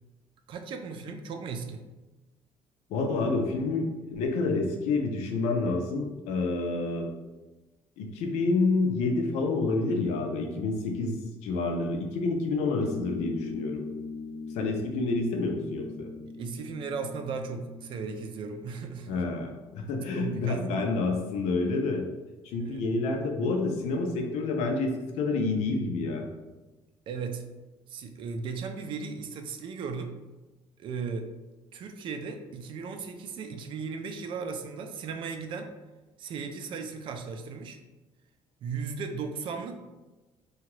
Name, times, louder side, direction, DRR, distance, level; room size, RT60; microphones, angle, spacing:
voice 1, 0.5-1.8 16.4-19.2 20.1-21.0 22.6-22.8 27.1-27.4 27.9-30.1 30.8-31.3 31.7-35.7 36.2-37.8 38.6-39.7, right 5 dB, 50° right, 6 dB, 0.4 m, -36 dB
voice 2, 2.9-7.1 8.0-11.1 11.4-13.9 14.5-16.1 19.1-22.0 22.4-26.3, left 3 dB, 85° left, 3 dB, 0.5 m, -28 dB
sound 1, 12.8-19.8, left 3 dB, 10° right, 0.7 m, -41 dB
2.8 x 2.3 x 3.0 m, 1.1 s
cardioid pair, 140°, 11 cm